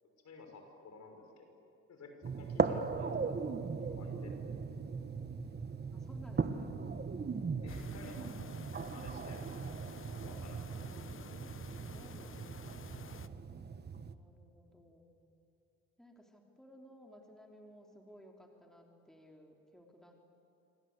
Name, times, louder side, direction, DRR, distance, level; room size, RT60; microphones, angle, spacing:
voice 1, 0.2-1.6 1.9-3.5 3.8-4.4 7.6-8.5 8.8-9.9 10.2-11.0, left 3 dB, 60° left, 4 dB, 6.1 m, -53 dB
sound 1, 2.2-14.1, right 5 dB, 35° right, 1.4 m, -38 dB
voice 2, 5.9-6.8 10.7-11.3 11.7-13.2 14.0-15.2 16.0-20.3, equal, ahead, 1 dB, 3.4 m, -58 dB
sound 2, 7.7-13.3, left 7 dB, 45° left, 1.1 m, -53 dB
27.5 x 24.5 x 8.2 m, 2.9 s
cardioid pair, 90°, 30 cm